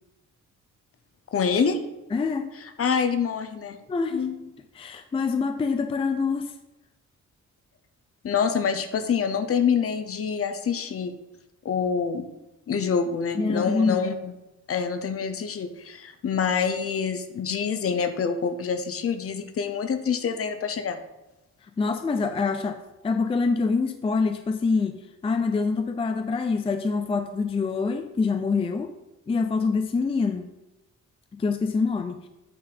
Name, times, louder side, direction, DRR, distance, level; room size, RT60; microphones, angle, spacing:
voice 1, 1.3-1.8 2.6-3.8 4.1-4.4 8.2-11.2 11.6-12.3 12.7-14.3 14.7-21.0, left 6 dB, 50° left, 9 dB, 0.7 m, -26 dB
voice 2, 2.1-2.5 3.9-4.3 4.8-6.5 13.4-14.1 21.8-28.9 29.3-30.5 31.3-32.3, left 4 dB, 20° left, 8 dB, 0.4 m, -25 dB
8.7 x 4.0 x 4.9 m, 0.97 s
wide cardioid pair, 140°, 30 cm